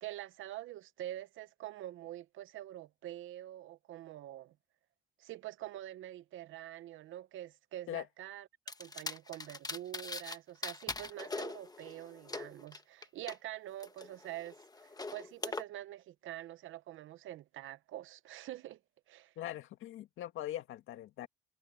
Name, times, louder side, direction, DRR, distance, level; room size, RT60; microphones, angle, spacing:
voice 1, 0.0-4.5 5.2-8.5 8.8-18.8 19.1-19.3, right 14 dB, 80° right, 0.8 m, -46 dB
sound 1, 8.7-10.4 10.6-13.4 13.8-15.6, left 3 dB, 20° left, 1.3 m, -42 dB
voice 2, 19.4-21.3, left 13 dB, 85° left, 1.9 m, -41 dB
cardioid pair, 90°, 20 cm